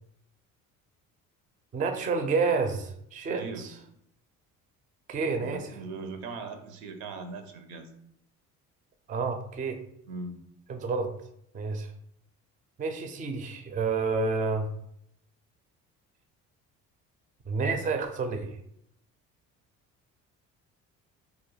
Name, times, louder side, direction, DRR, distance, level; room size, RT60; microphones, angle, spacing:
voice 1, 1.7-3.7 5.1-5.7 9.1-9.8 10.7-11.1 11.5-11.9 12.8-14.7 17.5-18.6, right 4 dB, 20° right, 6 dB, 0.4 m, -29 dB
voice 2, 3.2-3.7 5.4-7.9 10.1-10.4, right 3 dB, 75° right, 7 dB, 0.5 m, -39 dB
2.3 x 2.1 x 3.1 m, 0.72 s
hypercardioid pair, 65°, 38 cm